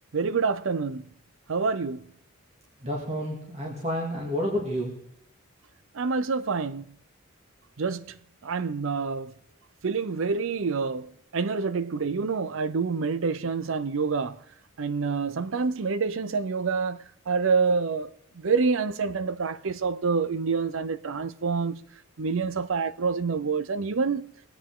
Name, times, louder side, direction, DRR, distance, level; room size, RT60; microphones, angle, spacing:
voice 1, 0.1-1.0 1.5-2.0 5.9-6.8 7.8-8.1 8.4-9.3 9.8-14.4 14.8-18.1 18.4-21.8 22.2-24.2, right 5 dB, 65° right, 0.6 m, -27 dB
voice 2, 2.8-4.9, equal, 30° right, 2.2 m, -30 dB
21.5 x 8.9 x 3.8 m
head